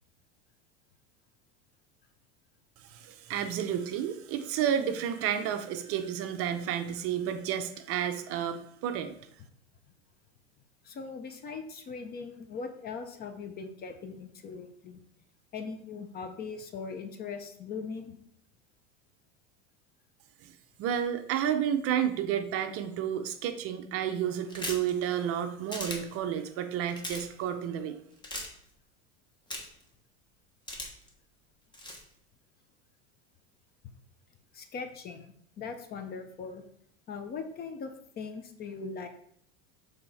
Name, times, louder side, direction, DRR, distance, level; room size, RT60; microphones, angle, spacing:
voice 1, 2.9-9.1 20.8-28.0, right 9 dB, 45° right, 8 dB, 0.6 m, -31 dB
voice 2, 10.8-15.0 15.5-18.2 34.5-36.6 37.1-39.1, left 5 dB, 30° left, 7 dB, 0.6 m, -40 dB
sound 1, 24.5-24.9 25.7-26.0 26.9-27.2 28.2-28.5 29.5-29.8 30.7-31.1 31.7-32.0, left 1 dB, 15° left, 1.0 m, -37 dB
6.7 x 3.4 x 4.1 m, 0.66 s
supercardioid pair, 135°, 34 cm